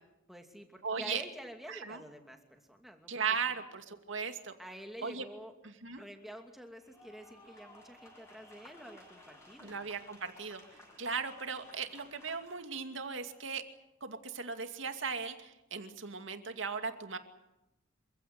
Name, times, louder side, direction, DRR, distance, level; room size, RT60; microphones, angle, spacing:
voice 1, 0.3-3.1 3.5-3.6 4.6-5.5 6.0-9.7, equal, ahead, 4 dB, 2.6 m, -49 dB
voice 2, 0.8-1.2 1.7-2.0 3.1-4.5 5.0-5.2 5.6-6.0 9.6-13.6 14.0-17.2, right 5 dB, 75° right, 7 dB, 2.4 m, -37 dB
sound 1, 6.8-12.7, left 1 dB, 15° left, 7.6 m, -57 dB
27.0 x 16.0 x 9.5 m, 0.93 s
head